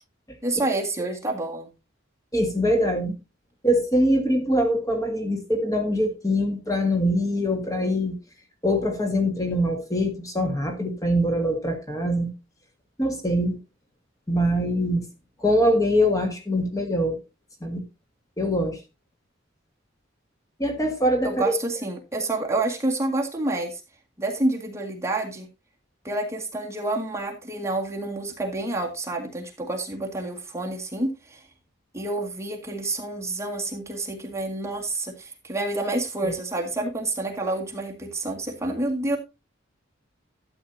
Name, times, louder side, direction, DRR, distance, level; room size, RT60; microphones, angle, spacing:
voice 1, 0.4-1.7 21.2-23.8 24.2-25.5 26.0-31.4 31.9-39.2, right 2 dB, 15° right, 0 dB, 1.8 m, -28 dB
voice 2, 2.3-3.2 3.6-8.2 8.6-12.3 13.0-13.6 14.3-15.0 15.4-17.2 17.6-17.8 18.4-18.8 20.6-21.5 36.2-36.3, equal, 20° left, 4 dB, 1.6 m, -23 dB
12.5 x 8.6 x 2.7 m, 0.25 s
head